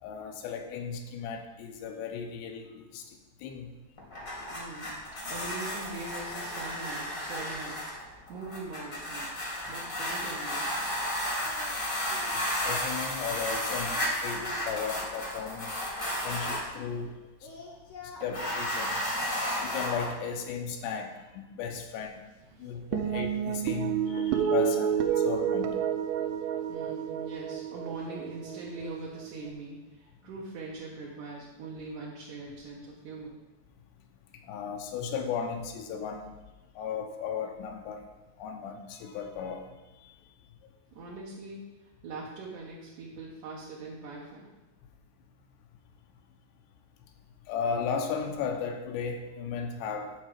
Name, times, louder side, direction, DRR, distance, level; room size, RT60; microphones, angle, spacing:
voice 1, 0.0-3.7 12.6-15.7 16.2-17.5 18.2-19.0 19.6-22.2 22.6-25.8 34.3-36.4 36.8-38.0 38.4-39.7 40.0-40.1 47.5-50.1, left 6 dB, 80° left, 4 dB, 2.9 m, -35 dB
sound 1, 4.0-16.7 18.2-20.1, equal, 40° left, 1.1 m, -33 dB
voice 2, 4.5-5.0 5.3-7.8 8.3-11.1 26.7-33.3 40.9-41.6 42.0-44.5, right 3 dB, 70° right, -4 dB, 1.9 m, -42 dB
Singing, 10.8-11.1 11.4-11.8 12.1-12.4 13.1-14.7 15.4-17.1 17.4-18.6, left 3 dB, 60° left, 1.3 m, -48 dB
sound 2, 22.9-29.5, right 8 dB, 90° right, 3.0 m, -30 dB
9.4 x 4.6 x 7.5 m, 1.1 s
omnidirectional pair, 5.0 m